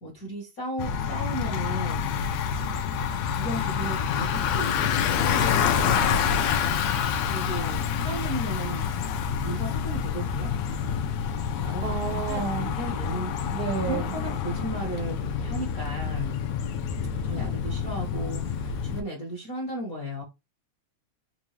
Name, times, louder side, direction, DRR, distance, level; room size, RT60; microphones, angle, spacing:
voice 1, 0.0-2.2 2.4-2.6 3.4-6.1 7.3-8.8 9.4-10.5 11.6-13.5 13.8-16.4 17.2-20.2, right 1 dB, 45° left, 1.1 m, -35 dB
Bicycle, 0.8-19.0, left 7 dB, 75° left, 1.7 m, -27 dB
voice 2, 11.8-12.7 13.5-14.1, right 6 dB, 70° right, 1.2 m, -30 dB
5.2 x 2.5 x 3.1 m
omnidirectional pair, 3.4 m